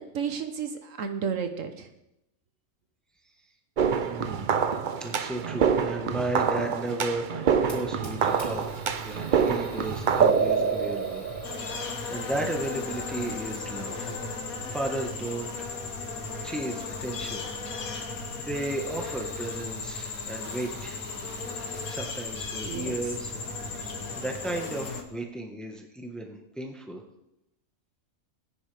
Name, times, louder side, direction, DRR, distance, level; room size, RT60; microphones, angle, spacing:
voice 1, 0.1-1.9 22.6-22.9, right 7 dB, 65° right, 7 dB, 1.3 m, -32 dB
sound 1, 3.8-11.9, right 6 dB, 50° right, 0.6 m, -26 dB
voice 2, 4.0-4.5 5.0-8.6 9.0-11.3 11.6-14.2 14.7-15.5 16.4-21.0 21.9-23.3 24.1-27.0, right 1 dB, ahead, 2 dB, 1.2 m, -34 dB
Fire, 7.6-25.2, right 1 dB, 30° left, 3.5 m, -44 dB
sound 2, 11.4-25.0, left 4 dB, 80° left, 1.6 m, -36 dB
19.0 x 10.0 x 3.4 m, 0.85 s
omnidirectional pair, 1.5 m